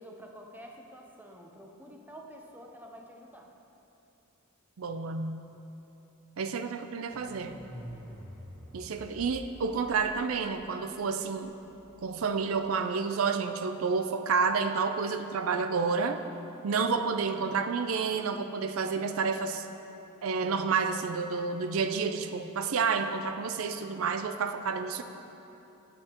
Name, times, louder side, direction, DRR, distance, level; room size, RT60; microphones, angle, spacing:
voice 1, 0.0-3.5, equal, 10° right, 1 dB, 0.8 m, -48 dB
voice 2, 4.8-5.4 6.4-7.6 8.7-11.5 12.0-16.2 16.6-19.7 20.2-25.0, right 5 dB, 90° right, 8 dB, 0.5 m, -30 dB
sound 1, 7.1-12.7, equal, 10° left, 2.4 m, -48 dB
15.0 x 8.7 x 3.0 m, 3.0 s
head